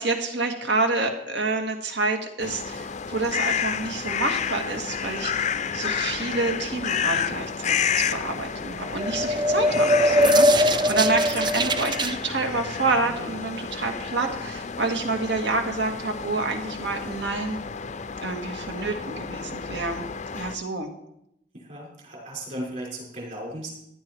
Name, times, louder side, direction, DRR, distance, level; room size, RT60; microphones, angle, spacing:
voice 1, 0.0-5.5 5.7-17.6 18.2-20.1 20.3-20.9, right 3 dB, 75° right, 4 dB, 1.9 m, -28 dB
sound 1, 2.4-20.6, left 7 dB, 40° left, 0.5 m, -31 dB
sound 2, 8.9-12.1, equal, 25° right, 0.5 m, -21 dB
voice 2, 21.5-23.7, right 1 dB, 45° right, -2 dB, 5.1 m, -36 dB
16.0 x 11.0 x 4.5 m, 0.79 s
head